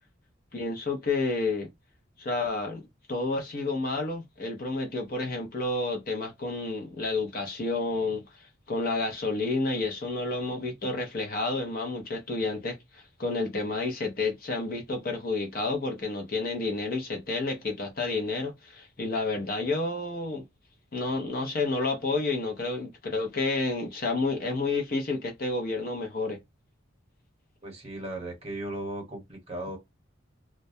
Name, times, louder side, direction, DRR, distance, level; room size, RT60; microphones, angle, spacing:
voice 1, 0.5-1.7 2.2-2.8 3.1-20.4 20.9-26.4, left 3 dB, 45° left, 0.6 m, -30 dB
voice 2, 27.6-29.8, right 1 dB, 30° right, 1.0 m, -36 dB
2.2 x 2.1 x 2.6 m
head